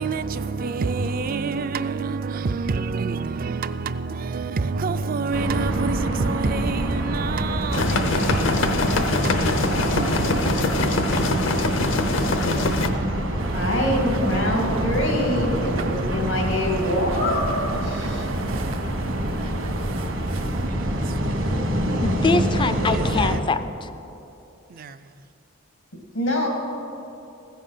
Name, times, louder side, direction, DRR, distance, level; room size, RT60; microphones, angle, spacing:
voice 1, 0.0-13.1 18.5-19.0 19.6-19.7 20.7-21.6 22.9-23.4 24.7-25.2, right 4 dB, 45° right, 0.4 m, -29 dB
sound 1, 5.3-23.4, right 1 dB, 70° right, 1.3 m, -26 dB
sound 2, 7.7-12.9, left 2 dB, 65° left, 0.8 m, -23 dB
sound 3, 13.4-20.7, right 2 dB, 85° right, 0.8 m, -32 dB
voice 2, 13.5-17.7 18.0-18.3 22.2-22.3 26.1-26.5, left 1 dB, 90° left, 2.3 m, -25 dB
voice 3, 22.0-23.9, left 3 dB, 25° left, 0.4 m, -24 dB
15.5 x 7.3 x 5.7 m
head